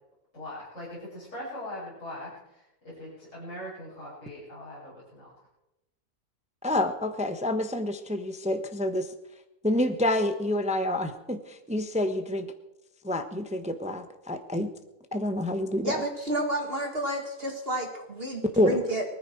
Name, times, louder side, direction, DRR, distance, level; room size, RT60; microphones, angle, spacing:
voice 1, 0.3-5.3, left 1 dB, 55° left, -9 dB, 6.9 m, -41 dB
voice 2, 6.6-9.1 9.6-12.5 13.0-14.7 15.1-16.0 18.6-18.8, left 1 dB, 5° right, 8 dB, 0.8 m, -28 dB
voice 3, 15.8-19.0, right 1 dB, 40° right, 3 dB, 2.1 m, -31 dB
19.5 x 14.0 x 4.5 m, 0.96 s
omnidirectional pair, 1.6 m